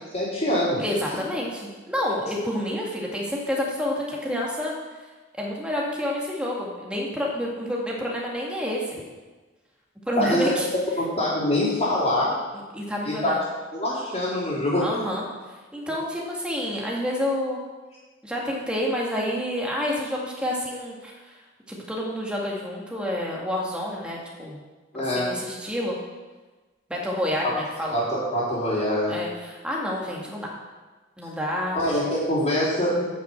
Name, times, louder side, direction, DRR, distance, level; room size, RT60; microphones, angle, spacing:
voice 1, 0.1-0.8 10.2-10.5 11.0-12.3 13.1-13.3 13.7-14.9 24.9-25.3 27.4-27.5 27.9-29.2 31.7-33.0, left 1 dB, 35° left, -9 dB, 3.5 m, -24 dB
voice 2, 0.8-4.7 5.3-9.0 10.1-10.7 12.5-13.4 14.8-15.3 15.7-17.6 18.2-21.1 21.7-24.6 25.2-26.0 26.9-28.0 29.1-30.5 31.2-31.8, left 1 dB, 5° right, -3 dB, 2.0 m, -29 dB
9.2 x 6.4 x 7.4 m, 1.3 s
head